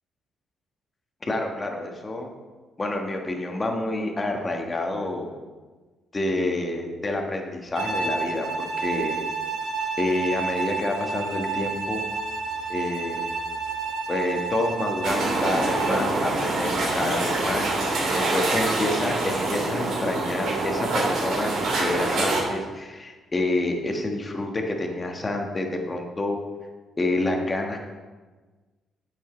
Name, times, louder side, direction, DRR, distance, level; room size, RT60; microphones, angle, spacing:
voice 1, 1.2-2.3 2.8-5.3 6.1-9.1 10.0-12.0 12.7-13.2 14.1-26.4 27.0-27.9, left 2 dB, 25° left, 2 dB, 1.5 m, -28 dB
Bowed string instrument, 7.8-16.1, right 4 dB, 90° right, 2.0 m, -30 dB
sound 1, 15.0-22.4, right 2 dB, 70° right, 2.7 m, -25 dB
9.1 x 7.4 x 4.5 m, 1.3 s
cardioid pair, 90°, 0 cm